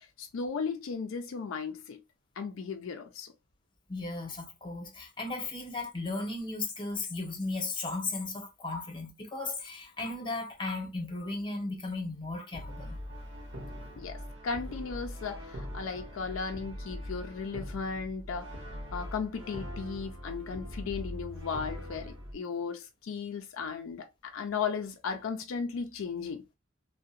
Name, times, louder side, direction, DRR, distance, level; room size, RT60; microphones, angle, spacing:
voice 1, 0.0-2.0 2.4-3.3 14.0-18.5 18.9-26.4, left 5 dB, 80° left, 0.4 m, -36 dB
voice 2, 3.9-13.0, left 3 dB, 25° left, 0.9 m, -36 dB
Brass instrument, 12.5-22.3, equal, 70° right, 0.9 m, -41 dB
2.7 x 2.1 x 2.4 m
head